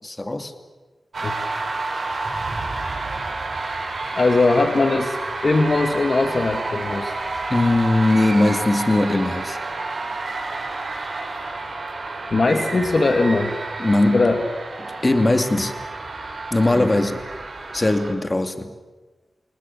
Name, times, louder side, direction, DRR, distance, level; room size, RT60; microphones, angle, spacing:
voice 1, 0.0-0.5 7.5-9.6 13.8-14.3 15.0-15.7 16.5-17.2 17.7-18.7, left 2 dB, 30° left, 7 dB, 2.7 m, -20 dB
sound 1, 1.1-18.1, right 3 dB, 65° right, 6.8 m, -30 dB
voice 2, 4.1-5.2 5.4-7.1 12.3-13.5 14.1-14.4 16.7-16.9, left 3 dB, 55° left, 5 dB, 2.5 m, -20 dB
29.5 x 20.0 x 8.7 m, 1.2 s
cardioid pair, 55°, 0 cm